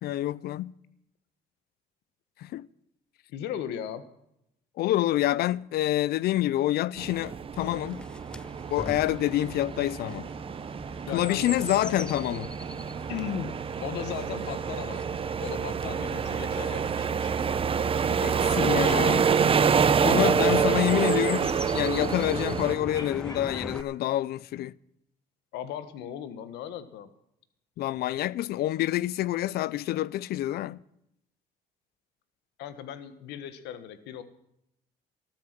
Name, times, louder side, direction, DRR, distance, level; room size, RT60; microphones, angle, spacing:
voice 1, 0.0-0.7 2.4-2.7 4.8-8.1 8.7-10.3 11.1-12.5 18.2-19.2 20.0-24.8 27.8-30.8, left 14 dB, 65° left, 0.5 m, -27 dB
voice 2, 3.3-4.1 11.1-11.6 13.1-15.0 15.4-17.3 18.6-19.0 25.5-27.1 32.6-34.2, left 9 dB, 85° left, 1.4 m, -37 dB
sound 1, 7.0-22.8, right 6 dB, 35° right, 0.8 m, -27 dB
Chirp tweet, 7.5-23.8, left 1 dB, 5° left, 0.4 m, -42 dB
sound 2, 21.0-22.3 22.9-24.0, left 2 dB, 25° left, 4.1 m, -51 dB
14.0 x 13.0 x 6.0 m
cardioid pair, 110°, 17 cm